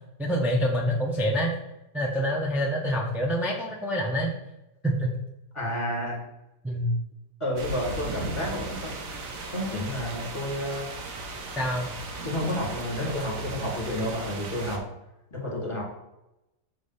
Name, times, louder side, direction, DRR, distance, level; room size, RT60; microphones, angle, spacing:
voice 1, 0.2-1.6 1.9-4.3 4.8-5.1 6.6-6.9 11.5-11.9, equal, 5° right, -1 dB, 0.3 m, -26 dB
voice 2, 5.5-6.2 7.4-9.0 9.5-10.9 12.2-14.8 15.3-15.8, left 1 dB, 20° left, -3 dB, 1.8 m, -30 dB
sound 1, 7.6-14.8, right 2 dB, 55° right, 1.2 m, -36 dB
6.2 x 3.3 x 5.5 m, 0.92 s
omnidirectional pair, 1.8 m